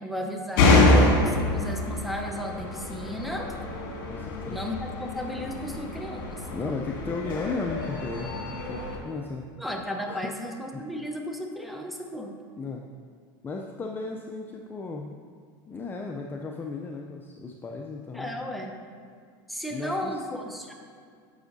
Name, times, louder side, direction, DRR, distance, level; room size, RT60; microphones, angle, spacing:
voice 1, 0.0-3.5 4.5-6.6 9.6-12.3 18.1-18.7 19.5-20.7, equal, ahead, 2 dB, 0.8 m, -34 dB
sound 1, 0.6-9.0, left 2 dB, 70° left, 2.0 m, -26 dB
voice 2, 4.1-4.6 6.5-9.4 10.1-10.3 10.7-10.8 12.6-12.8 13.4-15.2 15.7-18.3 19.7-20.2, left 3 dB, 20° left, 2 dB, 0.4 m, -35 dB
9.7 x 6.9 x 2.7 m, 2.1 s
supercardioid pair, 125°, 11 cm